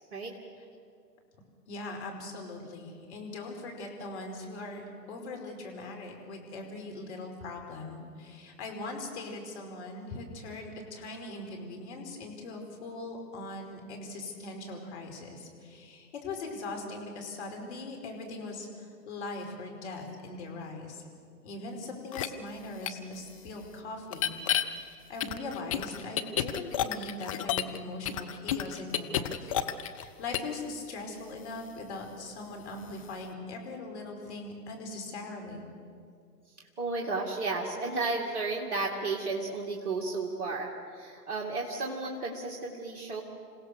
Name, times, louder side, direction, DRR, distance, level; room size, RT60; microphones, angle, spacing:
voice 1, 1.7-21.0 21.4-29.5 29.9-35.7, left 2 dB, 40° left, 2 dB, 5.0 m, -41 dB
sound 1, 22.1-22.3 22.9-23.0 24.1-24.6 25.2-27.8 28.1-30.0 30.3-30.5, left 11 dB, 20° left, 0.6 m, -30 dB
voice 2, 36.8-43.2, right 3 dB, 40° right, -1 dB, 2.5 m, -33 dB
28.0 x 17.0 x 6.7 m, 2.3 s
figure-of-eight pair, 125°, 49 cm